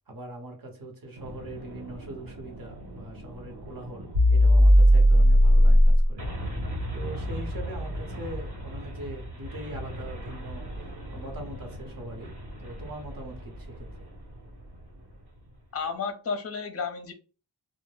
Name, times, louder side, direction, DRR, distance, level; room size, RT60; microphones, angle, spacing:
voice 1, 0.1-6.2 6.9-12.3 12.6-13.9, right 2 dB, 55° right, 0.9 m, -42 dB
sound 1, 1.2-13.9, equal, 70° right, 1.2 m, -23 dB
voice 2, 15.7-17.1, left 5 dB, 35° left, 0.6 m, -32 dB
2.1 x 2.0 x 3.2 m
wide cardioid pair, 90°, 42 cm